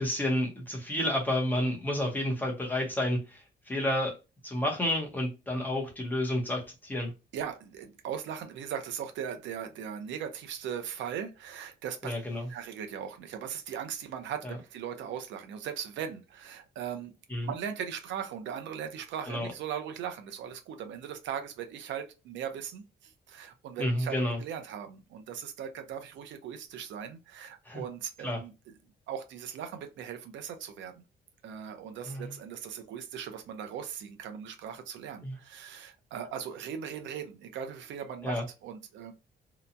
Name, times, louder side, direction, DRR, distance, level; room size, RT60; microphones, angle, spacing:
voice 1, 0.0-4.1 4.4-7.1 12.0-12.5 14.4-14.6 17.3-17.5 19.3-19.5 23.8-24.4 27.7-27.8 28.2-28.4 32.1-32.3 35.2-35.4 38.2-38.4, left 1 dB, 10° left, 0.8 m, -30 dB
voice 2, 7.3-12.2 12.5-17.1 17.4-28.5 29.1-31.0 31.4-39.1, right 8 dB, 80° right, 0.6 m, -39 dB
2.8 x 2.2 x 2.5 m
cardioid pair, 165°, 19 cm